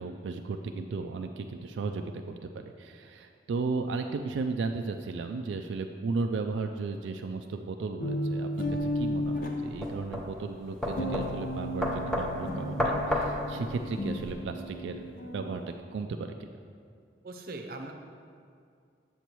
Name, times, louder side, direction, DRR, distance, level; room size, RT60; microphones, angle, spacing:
voice 1, 0.0-16.3, right 4 dB, 90° right, 5 dB, 0.3 m, -35 dB
sound 1, 8.0-9.9 10.9-15.7, left 1 dB, 50° left, 0.6 m, -34 dB
sound 2, 8.7-14.3, left 1 dB, 5° left, 0.6 m, -33 dB
voice 2, 17.2-17.9, right 2 dB, 50° right, 3 dB, 0.6 m, -40 dB
8.1 x 7.1 x 3.0 m, 2.3 s
head